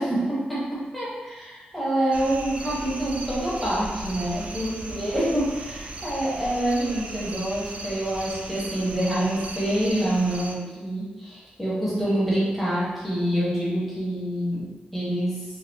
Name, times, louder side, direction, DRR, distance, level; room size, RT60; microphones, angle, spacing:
voice 1, 0.0-15.4, right 1 dB, ahead, -8 dB, 0.9 m, -26 dB
sound 1, 2.1-10.6, right 2 dB, 45° right, 0.3 m, -37 dB
4.1 x 2.1 x 2.6 m, 1.2 s
wide cardioid pair, 135°, 3 cm